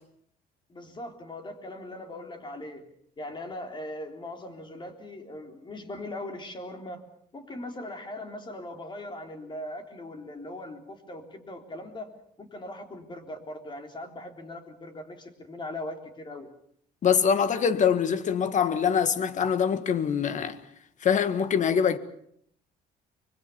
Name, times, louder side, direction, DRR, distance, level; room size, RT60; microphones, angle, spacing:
voice 1, 0.7-2.9 3.2-7.0 7.3-12.1 12.4-16.5, left 1 dB, 30° left, 3.6 m, -40 dB
voice 2, 17.0-20.6 21.0-22.0, left 7 dB, 45° left, 1.7 m, -24 dB
24.5 x 22.0 x 7.0 m
cardioid pair, 110°, 17 cm